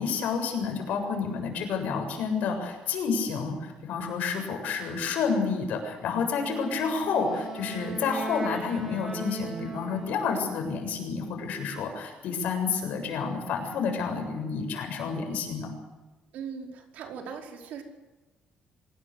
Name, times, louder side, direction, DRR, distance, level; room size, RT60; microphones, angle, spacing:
voice 1, 0.0-15.7, left 5 dB, 65° left, 4 dB, 7.4 m, -29 dB
Wind instrument woodwind instrument, 6.4-10.6, right 3 dB, 15° right, 4.7 m, -38 dB
voice 2, 16.3-17.8, right 6 dB, 70° right, 3 dB, 5.0 m, -39 dB
26.0 x 18.0 x 8.2 m, 1.1 s
cardioid pair, 175°, 3 cm